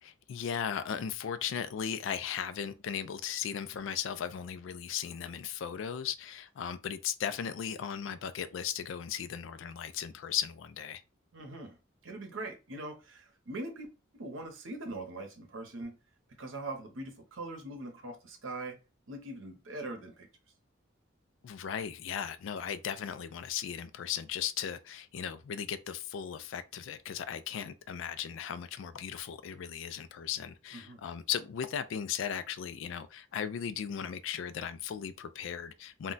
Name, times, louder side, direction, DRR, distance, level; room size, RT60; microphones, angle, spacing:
voice 1, 0.0-11.0 21.4-36.1, left 8 dB, 70° left, 0.3 m, -37 dB
voice 2, 11.3-11.8 12.0-13.9 14.1-16.0 16.4-18.8 19.1-20.3 30.7-31.0, right 2 dB, 75° right, 0.8 m, -42 dB
2.2 x 2.1 x 3.8 m
head